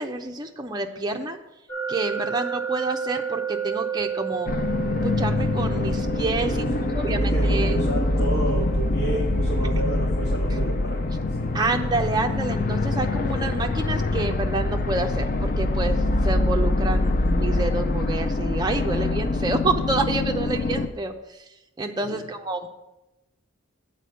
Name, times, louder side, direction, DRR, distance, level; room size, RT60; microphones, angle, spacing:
voice 1, 0.0-1.4 1.9-4.5 5.0-6.7 6.9-7.8 10.5-10.6 11.5-21.1 21.8-22.7, right 3 dB, 20° right, 4 dB, 0.5 m, -28 dB
sound 1, 1.7-14.6, right 7 dB, 15° left, 2.1 m, -34 dB
sound 2, 4.5-20.9, left 2 dB, 40° left, 0.4 m, -24 dB
voice 2, 6.4-11.1 11.4-11.6 22.0-22.2, right 2 dB, 80° left, -6 dB, 1.7 m, -31 dB
7.9 x 4.2 x 6.7 m, 0.96 s
head